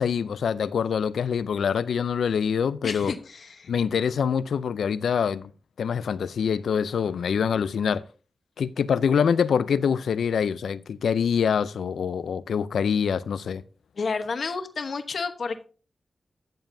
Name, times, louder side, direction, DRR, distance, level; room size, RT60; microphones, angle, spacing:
voice 1, 0.0-3.1 3.7-5.5 5.8-8.0 8.6-13.6, left 7 dB, 90° left, 0.4 m, -25 dB
voice 2, 2.8-3.7 14.0-15.6, left 4 dB, 70° left, 1.1 m, -31 dB
14.0 x 7.3 x 2.7 m
cardioid pair, 50°, 0 cm